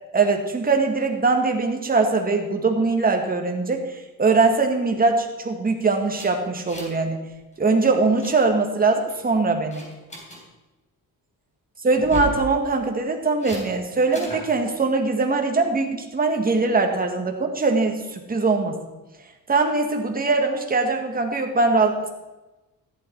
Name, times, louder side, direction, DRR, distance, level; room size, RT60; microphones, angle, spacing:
voice 1, 0.1-7.2 7.6-9.8 11.8-18.8 19.5-22.1, right 3 dB, 25° right, 3 dB, 2.0 m, -21 dB
sound 1, 6.1-7.1 7.3-7.5 7.9-8.3 8.9-9.2 9.7-10.4 11.9-12.4 13.4-13.6 14.1-14.5, left 1 dB, 20° left, 4.1 m, -35 dB
14.0 x 11.0 x 4.7 m, 1.1 s
cardioid pair, 120°, 35 cm